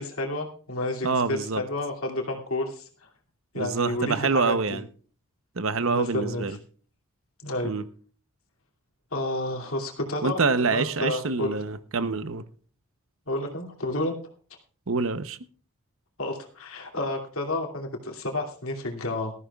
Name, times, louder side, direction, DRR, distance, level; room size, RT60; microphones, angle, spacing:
voice 1, 0.0-2.9 3.5-4.8 5.8-6.5 7.4-7.7 9.1-11.6 13.3-14.2 16.2-19.3, left 1 dB, 70° left, 2.6 m, -30 dB
voice 2, 1.0-1.6 3.5-4.8 5.6-6.6 7.6-7.8 10.2-12.4 14.9-15.4, right 4 dB, 60° right, 0.8 m, -26 dB
19.0 x 14.0 x 2.4 m
head